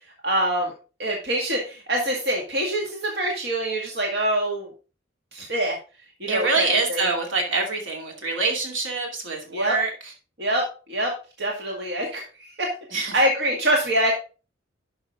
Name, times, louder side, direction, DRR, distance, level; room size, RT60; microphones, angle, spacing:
voice 1, 0.2-0.7 1.0-4.7 5.3-5.8 6.2-7.0 9.5-9.8 10.4-12.7 13.0-14.1, right 1 dB, 60° right, 0 dB, 2.0 m, -25 dB
voice 2, 6.3-9.9 12.9-13.1, right 3 dB, 85° right, 2 dB, 2.5 m, -25 dB
11.5 x 6.3 x 3.6 m, 0.33 s
head